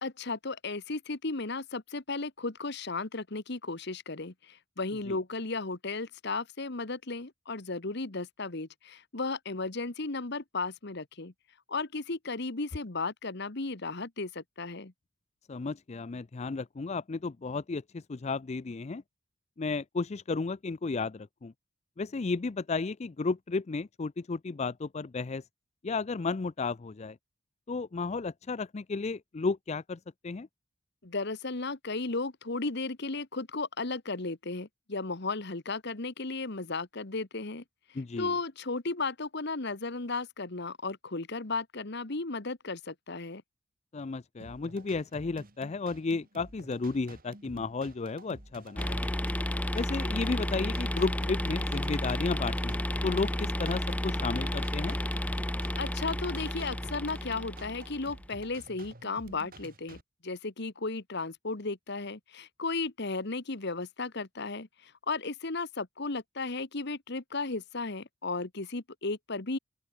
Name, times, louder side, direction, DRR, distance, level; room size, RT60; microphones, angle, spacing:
voice 1, 0.0-11.3 11.7-14.9 31.0-37.6 38.2-43.4 55.8-69.6, left 3 dB, 60° left, 1.5 m, -35 dB
voice 2, 15.5-19.0 19.6-21.5 22.0-25.4 25.8-27.2 27.7-30.5 37.9-38.3 43.9-49.1 49.7-55.0, left 4 dB, 35° left, 0.4 m, -33 dB
sound 1, 44.4-60.0, right 2 dB, 45° right, 3.0 m, -51 dB
sound 2, 48.8-58.2, left 1 dB, 5° left, 1.2 m, -32 dB
open air
head